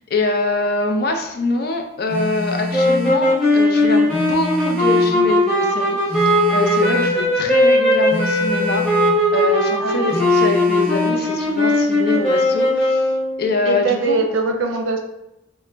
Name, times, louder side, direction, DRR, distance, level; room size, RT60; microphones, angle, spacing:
voice 1, 0.1-13.1 13.4-14.2, left 2 dB, 50° left, 3 dB, 0.4 m, -24 dB
Telephone, 2.1-3.2 4.1-5.2 6.1-7.2 8.1-9.2 10.1-11.2, left 2 dB, 30° right, 0.5 m, -27 dB
sound 1, 2.7-13.5, left 1 dB, ahead, 1.0 m, -18 dB
voice 2, 6.9-7.3 9.8-10.1 13.7-15.0, right 3 dB, 85° right, 3 dB, 0.6 m, -22 dB
3.8 x 2.1 x 3.3 m, 0.91 s
head